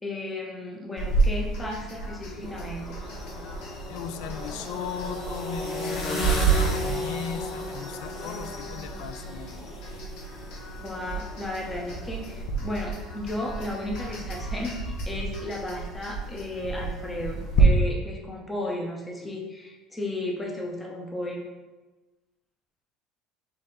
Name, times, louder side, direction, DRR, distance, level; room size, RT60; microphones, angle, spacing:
voice 1, 0.0-2.9 10.8-21.5, left 1 dB, 10° left, -1 dB, 0.6 m, -34 dB
Listening to music from headphones, 1.0-17.6, right 1 dB, 55° left, 0.8 m, -33 dB
sound 1, 2.4-12.4, right 3 dB, 35° left, 1.0 m, -31 dB
voice 2, 3.9-9.7, left 9 dB, 75° left, 9 dB, 0.3 m, -37 dB
4.1 x 3.2 x 3.7 m, 1.2 s
cardioid pair, 155°, 0 cm